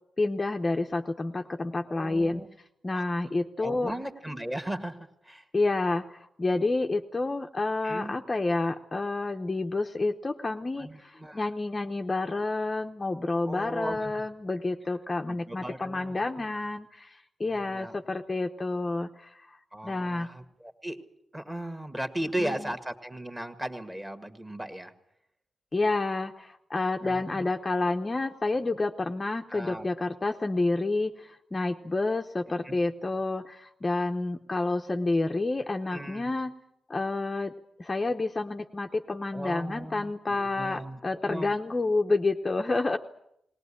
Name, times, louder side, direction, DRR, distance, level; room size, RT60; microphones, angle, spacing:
voice 1, 0.2-2.4 2.8-3.9 5.5-19.6 19.8-20.3 22.4-22.7 25.7-36.5 36.9-37.5 37.8-43.0, left 2 dB, 20° left, 4 dB, 0.8 m, -29 dB
voice 2, 1.9-2.5 2.9-3.0 3.6-5.5 7.8-8.1 10.8-11.5 13.4-14.1 15.3-16.1 17.5-17.9 19.7-21.0 21.3-24.9 27.0-27.4 29.5-29.9 32.6-32.8 35.9-36.3 39.3-41.0 41.3-41.5, right 1 dB, 10° right, 8 dB, 1.8 m, -37 dB
20.0 x 19.0 x 9.9 m, 0.76 s
wide cardioid pair, 160°, 0 cm